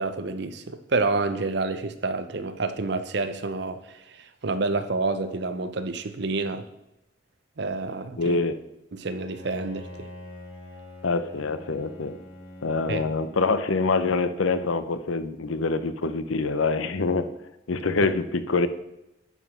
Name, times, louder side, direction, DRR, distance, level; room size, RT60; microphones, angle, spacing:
voice 1, 0.0-6.6 7.6-8.4 8.9-10.1 12.9-13.0, right 3 dB, 55° right, 10 dB, 0.7 m, -28 dB
voice 2, 8.2-8.6 11.0-12.2 12.6-17.3 17.7-18.7, left 3 dB, 85° left, 12 dB, 0.7 m, -25 dB
Bowed string instrument, 9.1-14.4, left 1 dB, 65° left, 3.3 m, -45 dB
11.0 x 5.0 x 5.6 m, 0.91 s
head